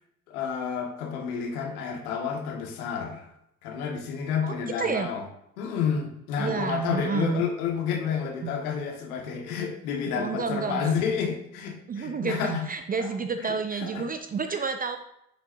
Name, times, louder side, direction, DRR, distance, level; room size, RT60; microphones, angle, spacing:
voice 1, 0.3-3.3 3.6-5.2 5.6-12.6 13.0-13.1 13.4-14.1, left 6 dB, 70° left, 2 dB, 1.7 m, -30 dB
voice 2, 4.4-5.1 6.4-7.4 8.4-8.5 10.1-10.9 11.9-15.0, right 5 dB, 20° right, 7 dB, 0.5 m, -30 dB
10.0 x 6.2 x 2.7 m, 0.78 s
hypercardioid pair, 70°, 46 cm